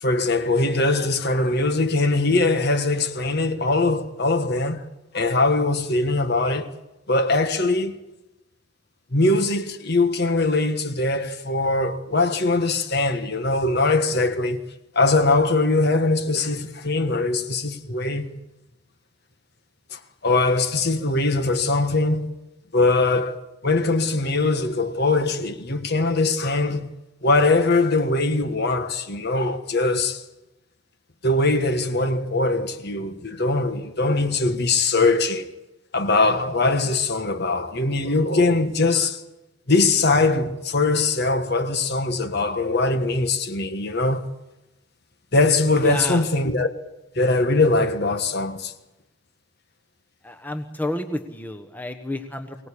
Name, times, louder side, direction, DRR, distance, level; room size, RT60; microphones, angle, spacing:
voice 1, 0.0-4.8 5.1-6.7 7.1-8.0 9.1-14.6 14.9-18.3 19.9-22.3 22.7-23.4 23.6-26.9 27.2-30.2 31.2-35.5 35.9-39.2 39.7-44.3 45.3-46.7 47.1-48.7, left 3 dB, 50° left, 1.5 m, -21 dB
voice 2, 45.7-46.2 50.2-52.6, left 1 dB, 10° left, 1.2 m, -30 dB
24.0 x 18.5 x 8.6 m
head